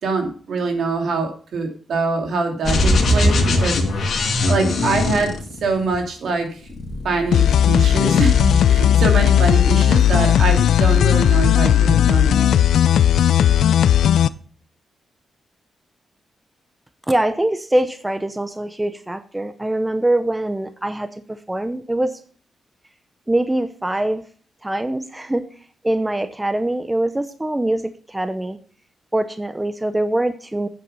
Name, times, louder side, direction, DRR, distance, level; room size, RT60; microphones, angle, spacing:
voice 1, 0.0-5.3 5.6-6.6 7.0-12.4, right 3 dB, 70° right, 3 dB, 2.8 m, -24 dB
sound 1, 2.6-6.0 6.7-7.8 8.0-8.6, left 1 dB, 65° left, 2.4 m, -20 dB
sound 2, 7.3-14.3, left 10 dB, 85° left, 0.4 m, -15 dB
voice 2, 17.1-22.2 23.3-24.2 24.6-25.5 25.8-28.6 29.1-30.7, right 1 dB, 10° right, 10 dB, 0.7 m, -23 dB
9.0 x 8.0 x 5.4 m, 0.42 s
cardioid pair, 110°, 0 cm